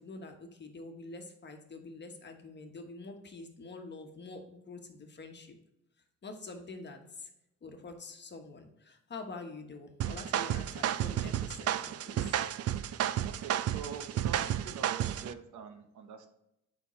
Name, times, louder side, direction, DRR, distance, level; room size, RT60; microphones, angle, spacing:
voice 1, 0.0-5.6 6.2-7.3 7.6-12.3, left 3 dB, 35° left, 4 dB, 1.2 m, -46 dB
sound 1, 10.0-15.3, right 11 dB, 55° right, 0.4 m, -32 dB
voice 2, 13.2-16.3, right 6 dB, 75° right, 6 dB, 1.0 m, -45 dB
6.9 x 5.3 x 3.1 m, 0.84 s
cardioid pair, 90°, 30 cm